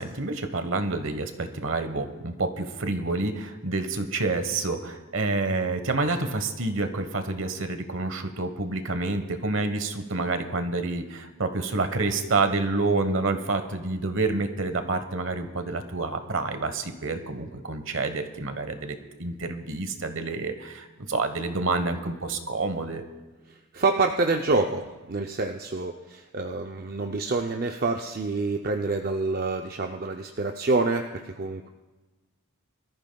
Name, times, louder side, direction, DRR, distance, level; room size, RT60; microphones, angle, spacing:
voice 1, 0.0-23.0, right 3 dB, 60° right, 8 dB, 1.1 m, -28 dB
voice 2, 23.7-31.7, right 3 dB, 40° right, 3 dB, 0.5 m, -27 dB
24.0 x 14.0 x 2.3 m, 1.2 s
head